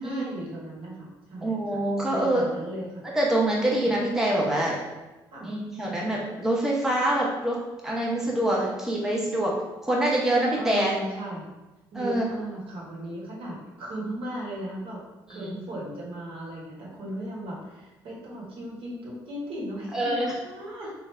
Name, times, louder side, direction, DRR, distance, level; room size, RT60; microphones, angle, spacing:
voice 1, 0.0-1.8 2.0-3.0 3.8-3.9 5.3-5.5 10.5-11.5 11.9-20.9, right 1 dB, 70° right, -5 dB, 1.2 m, -36 dB
voice 2, 1.4-2.4 3.1-4.8 5.4-7.6 7.8-9.5 9.8-10.9 12.0-12.3 15.3-15.6 19.9-20.3, right 1 dB, 5° right, -4 dB, 0.8 m, -25 dB
3.2 x 2.4 x 3.2 m, 1.1 s
supercardioid pair, 70°, 9 cm